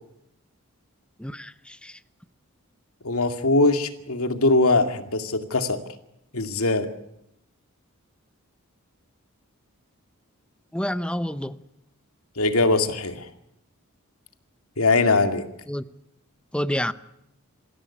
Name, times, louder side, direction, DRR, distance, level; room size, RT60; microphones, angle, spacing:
voice 1, 1.2-2.0 10.7-11.6 15.7-15.8 16.5-16.9, equal, 5° left, 0.8 m, -28 dB
voice 2, 3.0-5.8 6.3-6.9 12.4-13.3 14.8-15.4, left 3 dB, 80° left, 2.3 m, -21 dB
25.5 x 16.0 x 9.8 m
head